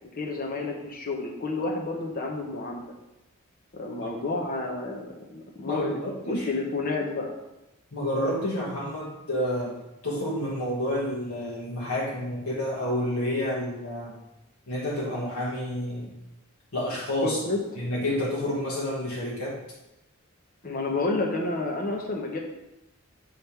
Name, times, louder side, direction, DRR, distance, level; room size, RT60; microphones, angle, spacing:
voice 1, 0.2-2.8 3.7-6.0 6.3-7.3 17.2-17.6 20.6-22.4, left 2 dB, 40° left, 0 dB, 0.8 m, -30 dB
voice 2, 5.6-6.5 7.9-14.2 14.7-16.1 16.7-17.4 17.8-19.6, left 1 dB, 75° left, -4 dB, 1.2 m, -29 dB
7.5 x 3.6 x 4.3 m, 0.95 s
head